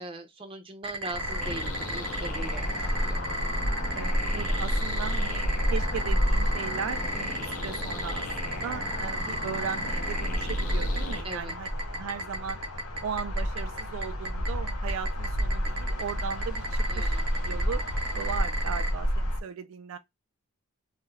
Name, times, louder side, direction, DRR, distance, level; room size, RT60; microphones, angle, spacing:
voice 1, 0.0-3.2 11.2-11.6 16.9-17.2, right 2 dB, 25° right, 0.6 m, -40 dB
sound 1, 0.8-18.9, right 1 dB, 90° right, 1.0 m, -33 dB
sound 2, 1.1-19.4, equal, 90° left, 0.8 m, -30 dB
sound 3, 1.4-11.2, left 2 dB, 35° left, 0.6 m, -39 dB
voice 2, 3.9-11.7 11.9-12.6 13.0-17.8 18.1-20.0, right 7 dB, 70° right, 0.4 m, -37 dB
2.7 x 2.3 x 3.1 m
head